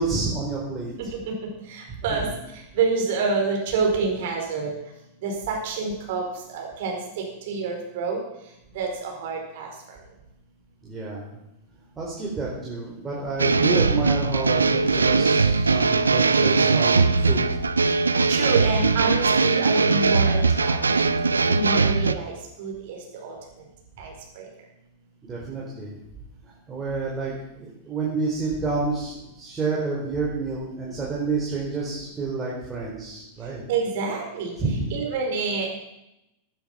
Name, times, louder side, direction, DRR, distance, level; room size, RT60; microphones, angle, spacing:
voice 1, 0.0-1.1 2.1-2.3 10.8-11.4 12.0-17.4 25.2-26.0 26.4-33.6 34.6-34.9, right 3 dB, 20° right, -5 dB, 4.4 m, -29 dB
voice 2, 1.0-1.3 1.7-2.3 2.7-4.7 5.2-8.2 8.7-9.7 18.3-21.0 21.5-23.3 24.0-24.5 33.7-35.7, right 4 dB, 55° right, 1 dB, 5.0 m, -28 dB
sound 1, 13.4-22.1, right 4 dB, 80° right, 0.6 m, -20 dB
16.5 x 9.3 x 5.9 m, 0.86 s
figure-of-eight pair, 95°, 0 cm